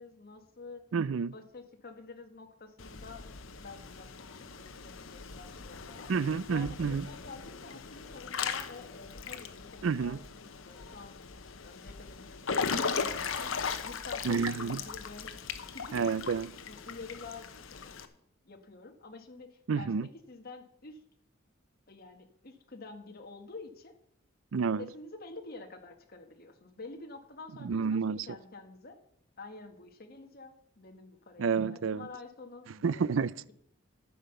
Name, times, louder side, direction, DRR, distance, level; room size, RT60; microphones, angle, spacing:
voice 1, 0.0-0.8 1.3-3.3 3.6-6.1 6.5-11.2 11.6-16.1 16.7-18.1 18.4-21.0 21.9-23.9 24.8-29.0 29.4-33.5, left 3 dB, 50° left, 1.6 m, -48 dB
voice 2, 0.9-1.3 6.1-7.1 9.8-10.2 14.2-14.8 15.9-16.5 19.7-20.1 24.5-24.8 27.6-28.2 31.4-32.1 32.8-33.3, right 5 dB, 70° right, 0.4 m, -29 dB
Water / Splash splatter / Drip, 2.8-18.1, left 5 dB, 75° left, 0.9 m, -38 dB
13.5 x 5.6 x 6.9 m
head